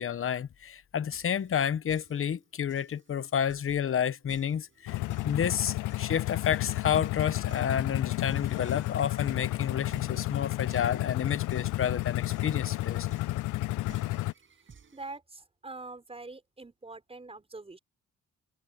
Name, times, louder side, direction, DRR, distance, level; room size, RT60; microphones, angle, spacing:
voice 1, 0.0-13.1, left 8 dB, 45° left, 1.2 m, -30 dB
sound 1, 1.1-15.2, right 6 dB, 40° right, 8.0 m, -58 dB
sound 2, 4.9-14.3, left 18 dB, 80° left, 0.5 m, -31 dB
voice 2, 14.9-17.8, right 3 dB, 20° right, 5.6 m, -44 dB
cardioid pair, 90°, 30 cm